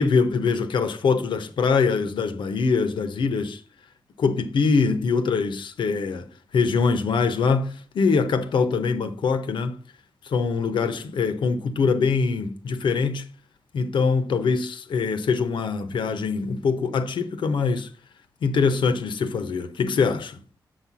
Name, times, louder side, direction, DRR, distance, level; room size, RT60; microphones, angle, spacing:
voice 1, 0.0-3.6 4.2-6.3 6.5-9.8 10.2-13.3 13.7-17.9 18.4-20.4, left 5 dB, 85° left, 0.8 m, -23 dB
6.4 x 4.2 x 6.1 m
cardioid pair, 65°, 8 cm